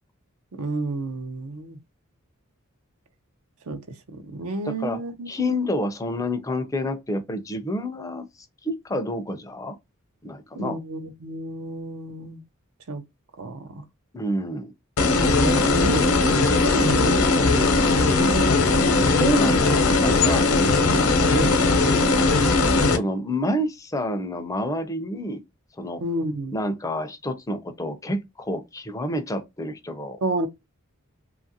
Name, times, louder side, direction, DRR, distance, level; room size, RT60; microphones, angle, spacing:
voice 1, 0.5-1.8 3.7-3.8 4.1-5.6 10.6-12.4 12.9-13.0 13.4-13.9 15.4-18.5 20.9-21.0 21.3-21.6 22.0-22.1 26.0-26.5 30.2-30.5, right 2 dB, 80° right, 0.6 m, -30 dB
voice 2, 4.6-5.0 5.3-8.3 8.6-9.8 10.2-10.8 14.1-14.7 18.8-20.5 22.8-25.4 25.8-26.0 26.5-30.2, left 1 dB, 15° left, 0.4 m, -28 dB
sound 1, 15.0-23.0, left 3 dB, 85° left, 0.7 m, -19 dB
2.8 x 2.4 x 2.6 m
head